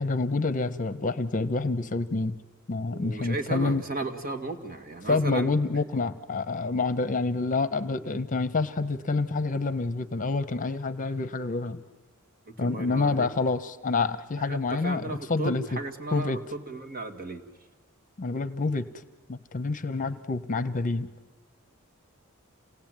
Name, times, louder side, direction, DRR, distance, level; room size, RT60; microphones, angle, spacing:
voice 1, 0.0-2.3 2.7-3.8 5.1-11.8 12.6-15.8 16.1-16.4 18.2-18.9 19.3-21.1, left 3 dB, 40° left, 11 dB, 0.9 m, -27 dB
voice 2, 2.9-5.5 12.5-13.3 14.4-17.4 20.0-20.2, right 3 dB, 45° right, 5 dB, 2.1 m, -35 dB
27.5 x 18.0 x 9.2 m, 1.3 s
head